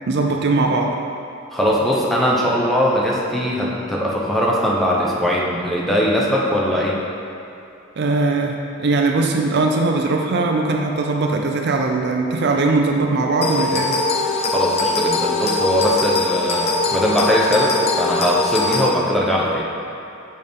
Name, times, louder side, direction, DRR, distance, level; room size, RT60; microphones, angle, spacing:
voice 1, 0.1-0.9 8.0-8.5 8.8-14.0, right 3 dB, 55° right, 2 dB, 0.5 m, -20 dB
voice 2, 1.5-7.0 14.5-19.7, equal, ahead, -5 dB, 0.8 m, -20 dB
sound 1, 13.4-18.9, left 3 dB, 30° left, 0.5 m, -21 dB
6.4 x 5.2 x 3.6 m, 2.7 s
head